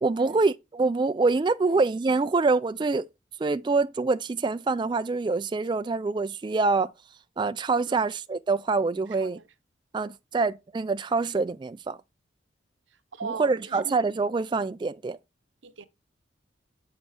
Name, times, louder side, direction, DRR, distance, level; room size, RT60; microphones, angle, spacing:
voice 1, 0.0-3.1 3.4-6.9 7.4-9.4 9.9-12.0 13.2-15.2, right 3 dB, 25° right, 0.3 m, -25 dB
voice 2, 13.1-13.9 15.6-15.9, right 5 dB, 80° right, 0.9 m, -39 dB
8.3 x 6.1 x 3.4 m
head